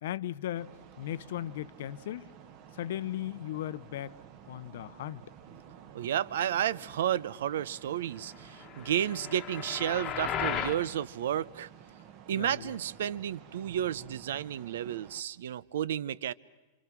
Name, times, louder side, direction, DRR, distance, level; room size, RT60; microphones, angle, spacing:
voice 1, 0.0-2.3 2.7-4.2 4.5-5.2 12.3-12.8, left 12 dB, 60° left, 0.8 m, -37 dB
sound 1, 0.5-15.2, right 8 dB, 30° right, 1.2 m, -52 dB
voice 2, 5.9-11.7 12.3-16.3, right 10 dB, 70° right, 0.7 m, -32 dB
sound 2, 8.6-10.8, left 8 dB, 20° left, 1.3 m, -35 dB
28.0 x 26.0 x 6.1 m
supercardioid pair, 175°, 0 cm